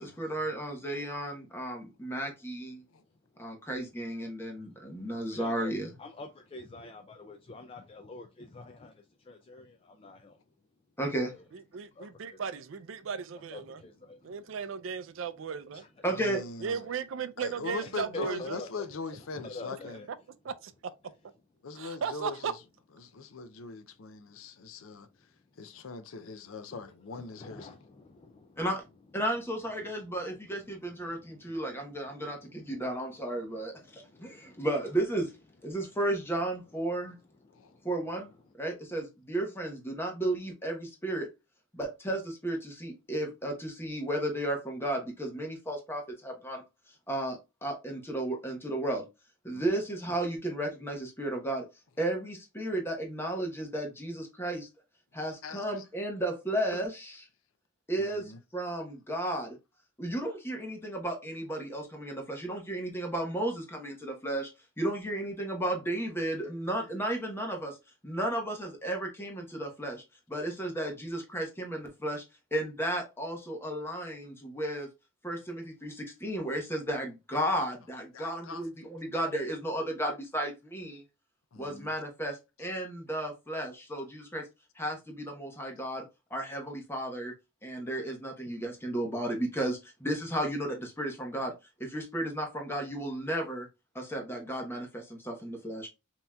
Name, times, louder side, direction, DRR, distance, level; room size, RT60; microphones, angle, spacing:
voice 1, 0.0-2.8 3.4-5.9 11.0-11.3 16.0-16.4 28.6-28.8 29.1-35.3 35.6-37.2 37.8-38.3 38.6-41.3 41.7-46.6 47.1-49.1 49.4-51.6 52.0-54.7 55.1-57.2 57.9-59.6 60.0-64.5 64.8-67.8 68.0-70.0 70.3-72.2 72.5-74.9 75.2-81.0 81.6-84.5 84.8-86.0 86.3-87.3 87.6-91.5 91.8-93.7 93.9-95.9, right 1 dB, 10° left, 1.0 m, -33 dB
voice 2, 4.5-4.9 5.3-10.4 11.3-11.5 11.9-12.6 13.5-14.6 15.7-15.9 17.8-18.9 19.2-20.1 26.7-28.7 29.8-34.7 35.8-35.9 37.4-37.9 38.2-38.5, left 3 dB, 25° left, 0.3 m, -48 dB
voice 3, 11.7-13.8 14.2-15.8 16.6-18.6 19.3-19.4 20.4-20.7 21.8-22.5, right 6 dB, 65° right, 0.4 m, -36 dB
voice 4, 16.1-16.8 17.4-20.0 21.6-22.5 23.0-25.1 25.6-27.7 37.5-37.7 49.5-49.8 55.4-55.6 58.0-58.4 66.7-66.9 78.1-78.9 81.5-81.9, left 4 dB, 75° left, 0.5 m, -41 dB
5.4 x 2.9 x 2.2 m
head